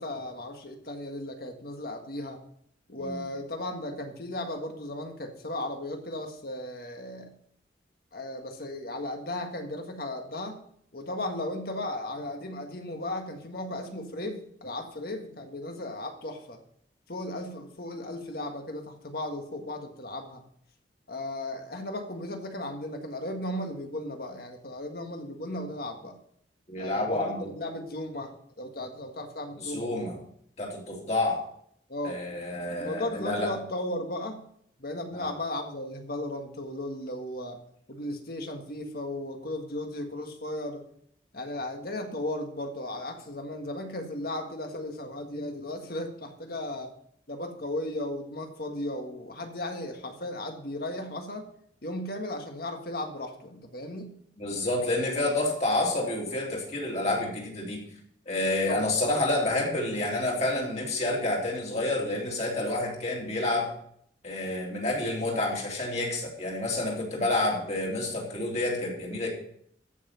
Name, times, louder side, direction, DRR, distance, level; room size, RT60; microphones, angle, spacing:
voice 1, 0.0-2.4 2.9-7.3 8.1-10.6 10.9-16.6 17.1-20.4 21.1-26.1 26.8-30.2 31.9-32.3 32.8-34.4 34.8-37.6 37.9-40.8 41.3-46.9 47.3-51.5 51.8-54.1 58.7-59.0, left 1 dB, 55° left, 4 dB, 1.7 m, -36 dB
voice 2, 26.7-27.5 29.6-30.1 30.6-31.4 32.0-33.5 35.1-35.3 54.4-57.8 58.3-63.7 64.2-69.3, left 2 dB, 35° left, -2 dB, 2.8 m, -29 dB
14.5 x 5.9 x 5.6 m, 0.66 s
head